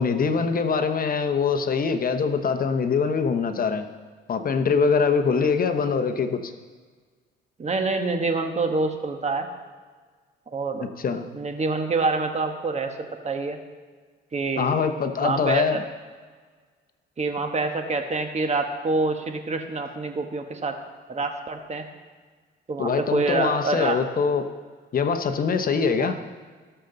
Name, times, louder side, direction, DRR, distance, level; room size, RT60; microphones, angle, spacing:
voice 1, 0.0-3.9 4.3-6.5 11.0-11.2 14.6-15.8 22.8-24.5 24.9-26.2, left 5 dB, 45° left, 7 dB, 0.9 m, -23 dB
voice 2, 7.6-9.5 10.5-10.9 11.3-12.9 13.2-13.6 14.3-14.7 15.2-15.8 17.2-20.8 21.1-21.8 22.7-24.0 26.0-26.1, right 3 dB, 35° right, 5 dB, 1.3 m, -26 dB
18.5 x 6.8 x 3.9 m, 1.5 s
cardioid pair, 90°, 20 cm